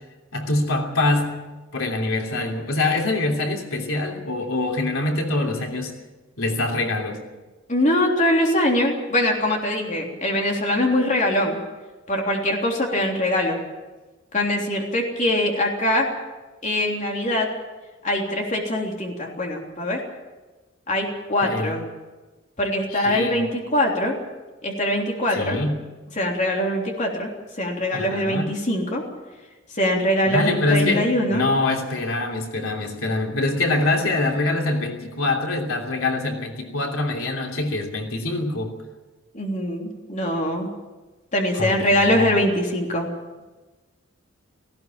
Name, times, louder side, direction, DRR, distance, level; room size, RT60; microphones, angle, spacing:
voice 1, 0.3-5.9 6.4-7.2 21.4-21.7 22.9-23.4 25.3-25.8 27.9-28.5 30.3-38.7 41.5-41.8 42.1-42.4, left 2 dB, 90° left, 1 dB, 3.1 m, -24 dB
voice 2, 7.7-11.6 12.1-13.6 14.3-16.1 16.6-17.5 18.0-20.0 20.9-21.8 22.6-24.2 24.6-25.6 26.2-27.3 27.6-29.0 29.7-31.4 39.3-40.7 41.3-43.1, left 1 dB, 35° left, 0 dB, 3.4 m, -22 dB
18.0 x 16.5 x 8.9 m, 1.2 s
head